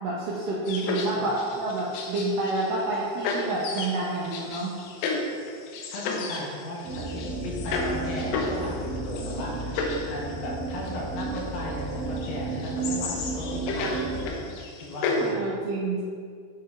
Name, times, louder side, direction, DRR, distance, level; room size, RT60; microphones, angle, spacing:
voice 1, 0.0-4.8 15.2-16.0, right 2 dB, 80° right, -5 dB, 2.0 m, -29 dB
sound 1, 0.7-2.9 3.2-15.3, left 3 dB, 90° left, 2.8 m, -33 dB
voice 2, 5.9-9.8 10.1-15.4, left 2 dB, 70° left, -3 dB, 2.7 m, -37 dB
sound 2, 6.8-14.3, right 3 dB, 55° right, 1.9 m, -33 dB
9.1 x 4.6 x 3.5 m, 2.2 s
omnidirectional pair, 4.7 m